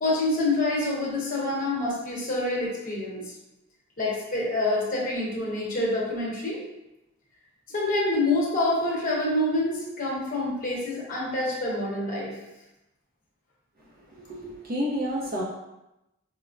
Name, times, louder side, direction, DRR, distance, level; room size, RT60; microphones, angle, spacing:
voice 1, 0.0-3.2 4.0-6.6 7.7-12.4, left 2 dB, 40° left, -4 dB, 0.9 m, -27 dB
voice 2, 14.3-15.4, equal, 45° right, -3 dB, 0.5 m, -29 dB
4.3 x 2.0 x 2.5 m, 0.93 s
head